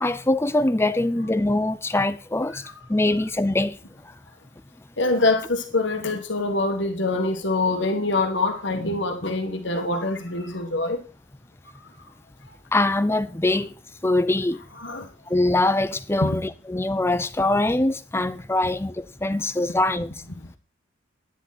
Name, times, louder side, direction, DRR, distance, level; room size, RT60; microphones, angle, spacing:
voice 1, 0.0-2.6 2.9-3.7 12.7-13.7 14.0-14.6 15.3-20.1, left 2 dB, 10° left, 0.5 m, -23 dB
voice 2, 5.0-11.0 14.8-15.1 16.2-16.4, left 2 dB, 60° left, 1.8 m, -24 dB
10.5 x 10.0 x 4.3 m
head